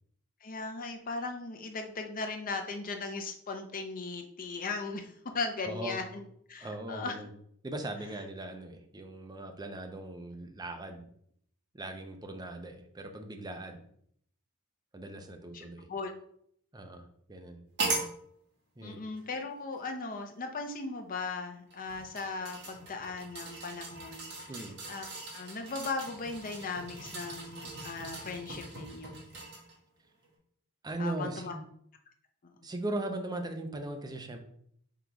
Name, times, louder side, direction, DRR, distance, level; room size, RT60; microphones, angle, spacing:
voice 1, 0.4-6.2 6.5-7.2 15.5-16.1 18.8-24.3 24.9-29.1 31.0-31.5 32.6-32.7, left 3 dB, 40° left, 4 dB, 0.6 m, -38 dB
voice 2, 5.6-6.0 6.6-7.3 7.6-11.0 11.7-13.8 14.9-15.9 16.7-17.6 18.8-19.0 24.5-24.8 30.8-31.6 32.6-34.4, right 1 dB, 20° right, 4 dB, 0.5 m, -39 dB
sound 1, 17.8-18.1 19.2-19.3 21.7-29.8 30.2-30.3, right 3 dB, 55° right, 1.4 m, -39 dB
3.8 x 3.0 x 4.6 m, 0.67 s
head